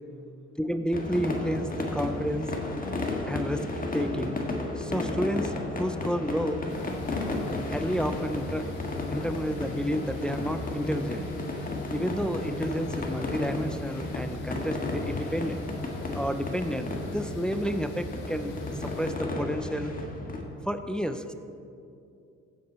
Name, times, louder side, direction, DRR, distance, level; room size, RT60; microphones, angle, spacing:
voice 1, 0.6-2.5 3.3-3.7 3.9-4.4 4.8-6.6 7.7-8.7 9.1-11.3 11.9-15.7 16.1-18.5 18.8-19.9 20.7-21.3, equal, 5° left, 9 dB, 0.6 m, -30 dB
sound 1, 0.9-20.4, left 2 dB, 30° left, 1.7 m, -33 dB
sound 2, 6.7-19.1, left 3 dB, 85° left, 2.0 m, -48 dB
15.0 x 7.9 x 4.4 m, 2.5 s
cardioid pair, 90°, 30 cm